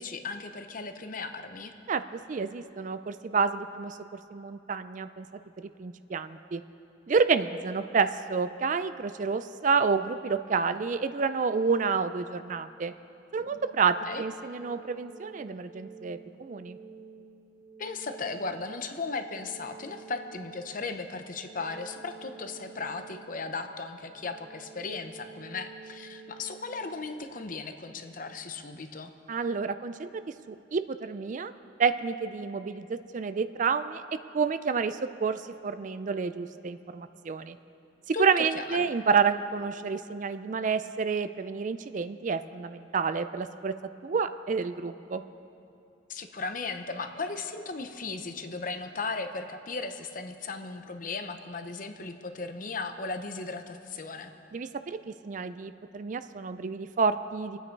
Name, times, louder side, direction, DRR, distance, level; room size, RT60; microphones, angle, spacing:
voice 1, 0.0-1.7 14.0-14.3 17.8-29.1 38.1-38.9 46.1-54.3, left 4 dB, 45° left, 7 dB, 0.8 m, -36 dB
voice 2, 1.9-4.0 4.3-5.3 5.8-6.6 7.1-12.9 13.3-16.8 29.3-30.1 30.5-31.5 31.8-34.0 34.3-37.6 38.1-43.7 44.0-45.2 54.5-57.6, right 5 dB, 40° right, 12 dB, 0.4 m, -29 dB
sound 1, 13.4-28.4, right 4 dB, 65° right, 2.9 m, -50 dB
26.5 x 9.1 x 4.6 m, 2.7 s
head